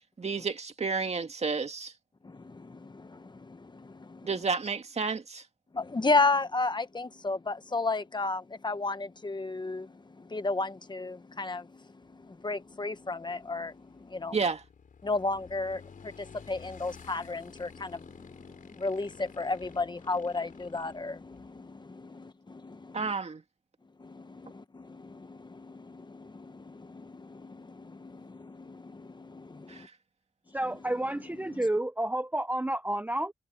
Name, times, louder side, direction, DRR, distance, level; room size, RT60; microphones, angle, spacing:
voice 1, 0.2-1.9 4.2-5.4 14.3-14.6 22.9-23.4 29.7-29.9, right 4 dB, 50° right, 2.1 m, -31 dB
voice 2, 2.2-4.3 5.7-14.4 15.0-23.1 24.0-29.9 31.5-31.6, left 3 dB, 35° left, 1.2 m, -34 dB
Motorcycle / Engine, 12.0-21.7, left 6 dB, 80° left, 4.3 m, -53 dB
voice 3, 30.5-33.3, right 1 dB, 10° right, 0.6 m, -30 dB
wide cardioid pair, 80°, 14 cm